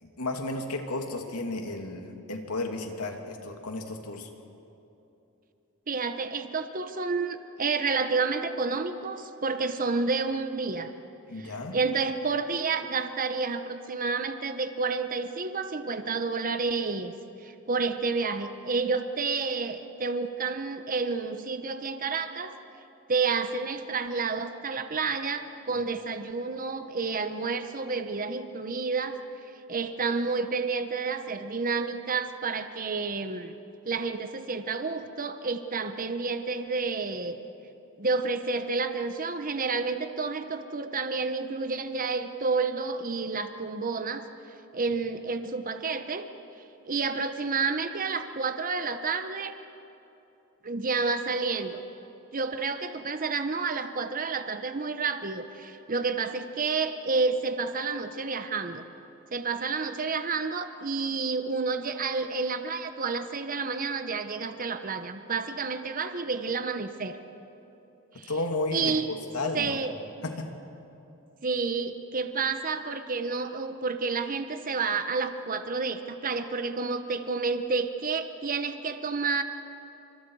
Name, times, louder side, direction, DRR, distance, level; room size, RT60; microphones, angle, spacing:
voice 1, 0.2-4.3 11.3-11.8 68.3-69.8 70.2-70.5, left 2 dB, 90° left, 3 dB, 2.7 m, -33 dB
voice 2, 5.9-10.9 11.4-17.1 17.4-22.6 23.1-29.2 29.7-33.5 33.8-37.4 38.0-44.2 44.7-46.3 46.9-49.6 50.6-51.8 52.3-58.8 59.3-67.2 68.1-68.3 68.7-69.1 69.5-69.9 71.4-79.4, right 4 dB, 40° right, 8 dB, 1.0 m, -30 dB
30.0 x 26.5 x 4.8 m, 3.0 s
head